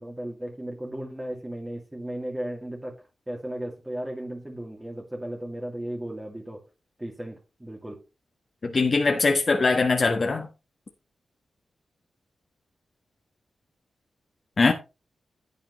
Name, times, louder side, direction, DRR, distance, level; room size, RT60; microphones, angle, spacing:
voice 1, 0.0-6.6 7.0-8.0, right 1 dB, 15° right, 2.3 m, -35 dB
voice 2, 8.6-10.5 14.6-14.7, left 3 dB, 45° left, 1.4 m, -21 dB
11.0 x 9.0 x 3.1 m
cardioid pair, 80°, 0 cm